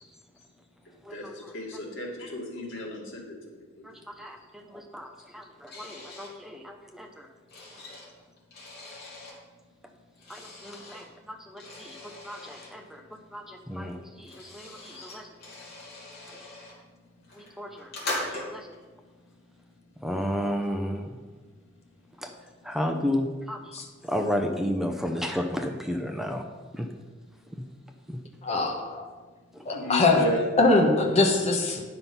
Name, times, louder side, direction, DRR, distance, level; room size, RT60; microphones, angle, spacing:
voice 1, 1.5-3.3 29.7-30.4 31.1-31.3, left 1 dB, 85° left, -2 dB, 2.2 m, -32 dB
voice 2, 3.8-7.3 10.3-15.3 16.3-16.4 17.3-17.9 18.3-18.8 20.0-21.2 22.2-22.3 22.6-23.8 24.0-26.4 26.7-26.9 27.5-27.6 28.1-28.2 29.5-29.6, equal, ahead, 4 dB, 0.6 m, -33 dB
sound 1, 5.7-6.3 7.1-9.4 10.2-11.0 11.6-12.7 13.7-13.8 14.0-16.8 17.2-18.8, left 1 dB, 60° left, 2.7 m, -40 dB
voice 3, 28.4-29.1 29.6-30.2 30.6-31.8, left 2 dB, 35° left, 1 dB, 1.2 m, -22 dB
9.8 x 5.8 x 5.5 m, 1.3 s
head